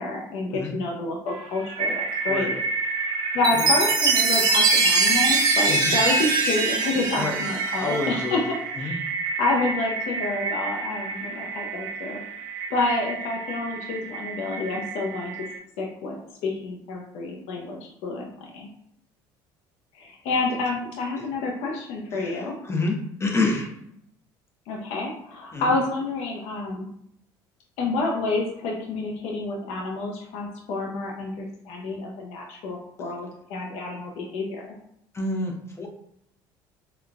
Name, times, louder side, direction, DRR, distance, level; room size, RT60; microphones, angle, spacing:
voice 1, 0.0-2.6 3.3-9.1 9.4-12.2 12.7-15.4 15.8-16.2 16.4-18.7 19.9-22.6 24.7-26.9 27.8-34.6, left 3 dB, 70° left, -1 dB, 0.6 m, -29 dB
sound 1, 1.3-15.6, right 4 dB, 60° right, 0.5 m, -29 dB
Chime, 3.4-8.1, right 3 dB, 40° right, 0.9 m, -22 dB
voice 2, 7.8-9.0 22.1-23.7 25.5-25.7 35.1-35.9, left 3 dB, 25° left, 2 dB, 0.8 m, -28 dB
3.8 x 2.2 x 2.3 m, 0.72 s
supercardioid pair, 75°, 11 cm